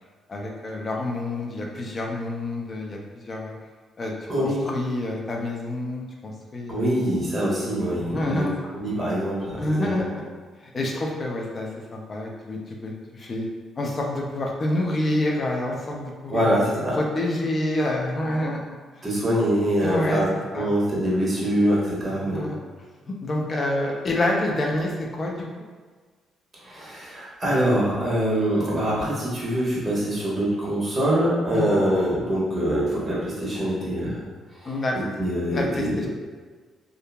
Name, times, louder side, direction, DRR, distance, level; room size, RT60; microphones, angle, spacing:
voice 1, 0.3-3.5 4.0-4.1 4.4-6.9 8.1-8.6 9.6-10.2 10.6-13.5 13.8-19.0 19.8-20.2 20.5-20.7 22.1-22.6 23.1-25.6 31.5-31.8 34.6-35.0 35.5-36.1, left 1 dB, 40° left, 0 dB, 0.5 m, -28 dB
voice 2, 4.3-4.6 6.7-8.5 8.7-10.1 16.3-16.9 19.0-20.2 20.5-22.4 26.6-34.2 34.6-34.7 35.2-36.1, equal, 30° right, -7 dB, 1.1 m, -24 dB
2.8 x 2.4 x 2.2 m, 1.5 s
cardioid pair, 85°, 0 cm